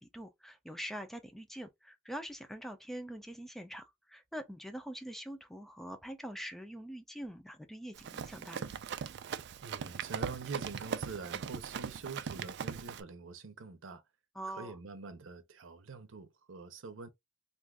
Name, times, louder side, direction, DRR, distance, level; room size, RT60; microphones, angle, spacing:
voice 1, 0.0-8.7 14.3-14.8, equal, ahead, 0.5 m, -44 dB
Run, 8.0-13.0, right 7 dB, 60° right, 0.3 m, -39 dB
voice 2, 9.6-14.0 14.5-17.1, right 4 dB, 90° right, 0.7 m, -45 dB
2.6 x 2.4 x 3.5 m
head